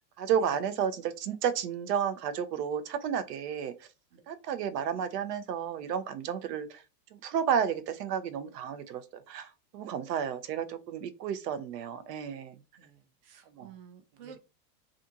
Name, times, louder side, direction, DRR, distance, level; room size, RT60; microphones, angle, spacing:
voice 1, 0.2-3.7 4.3-6.8 7.2-9.0 9.3-9.5 9.7-12.5 13.5-13.7, right 8 dB, 80° right, 0.6 m, -32 dB
voice 2, 12.8-14.4, right 7 dB, 35° right, 0.6 m, -52 dB
2.5 x 2.5 x 2.7 m
supercardioid pair, 130°, 47 cm